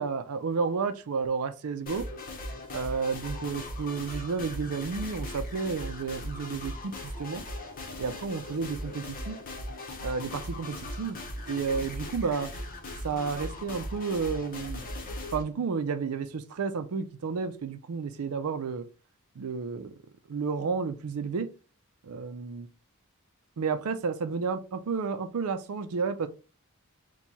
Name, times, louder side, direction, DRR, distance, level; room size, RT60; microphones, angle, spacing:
voice 1, 0.0-2.1 2.7-7.4 8.0-9.4 10.0-11.2 11.5-12.5 13.0-14.8 15.3-18.9 19.4-19.9 20.3-21.5 22.0-22.7 23.6-26.3, right 5 dB, 80° right, 0.5 m, -31 dB
sound 1, 1.9-15.4, left 1 dB, 40° left, 0.9 m, -39 dB
4.5 x 2.3 x 4.0 m
head